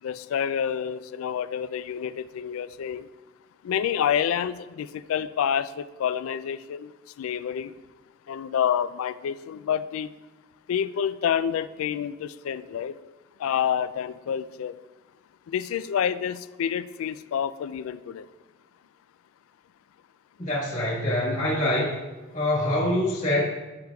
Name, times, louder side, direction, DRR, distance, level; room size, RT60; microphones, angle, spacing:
voice 1, 0.0-3.1 3.6-6.9 7.2-7.7 8.3-10.1 10.7-13.0 13.4-14.7 15.5-18.3, left 8 dB, 85° left, 15 dB, 0.3 m, -28 dB
voice 2, 20.4-21.9 22.3-23.4, left 1 dB, 35° left, -5 dB, 1.4 m, -25 dB
10.5 x 6.8 x 2.3 m, 1.2 s
head